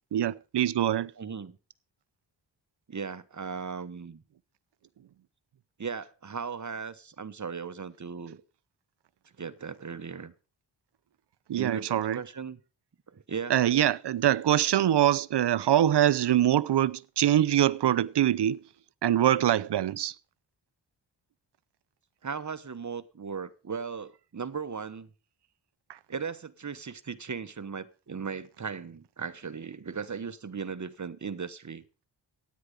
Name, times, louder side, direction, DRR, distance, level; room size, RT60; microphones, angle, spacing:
voice 1, 0.1-1.1 11.5-12.2 13.5-18.6 19.0-20.1, right 11 dB, 60° right, 0.7 m, -24 dB
voice 2, 1.2-1.6 2.9-4.2 5.8-8.4 9.4-10.3 11.5-12.6 13.1-13.5 22.2-25.1 26.1-31.8, right 6 dB, 40° right, 1.2 m, -37 dB
16.0 x 9.7 x 5.2 m
cardioid pair, 65°, 46 cm